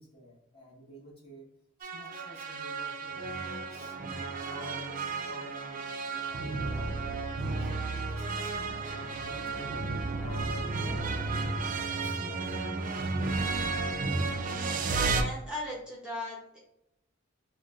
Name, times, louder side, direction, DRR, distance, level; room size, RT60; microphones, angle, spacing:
voice 1, 0.0-1.5 1.8-4.0 4.4-12.7, left 1 dB, 30° left, -4 dB, 1.2 m, -50 dB
sound 1, 1.8-15.2, right 3 dB, 40° right, 0.4 m, -33 dB
voice 2, 15.1-16.6, left 1 dB, 5° right, -5 dB, 0.7 m, -37 dB
3.6 x 2.1 x 3.5 m, 0.80 s
head